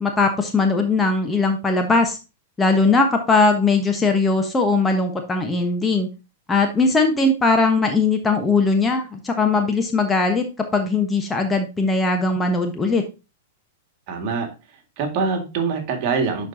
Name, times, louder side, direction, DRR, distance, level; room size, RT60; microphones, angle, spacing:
voice 1, 0.0-2.2 2.6-6.1 6.5-10.4 10.7-13.0, left 3 dB, 15° left, 3 dB, 1.2 m, -19 dB
voice 2, 14.1-14.5 15.0-16.5, right 5 dB, 45° right, 4 dB, 2.0 m, -24 dB
11.0 x 4.5 x 2.8 m, 0.29 s
figure-of-eight pair, 100°, 0 cm